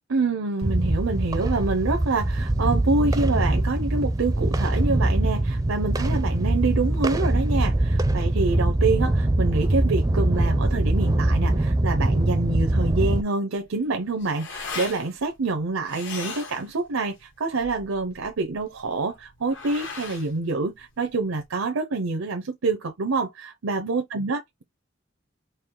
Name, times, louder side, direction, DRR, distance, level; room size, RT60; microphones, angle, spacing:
voice 1, 0.1-24.6, right 3 dB, 80° right, 0.6 m, -26 dB
sound 1, 0.6-13.2, right 1 dB, 15° right, 0.5 m, -23 dB
sound 2, 13.6-21.5, left 4 dB, 65° left, 1.4 m, -40 dB
4.4 x 2.8 x 3.7 m
head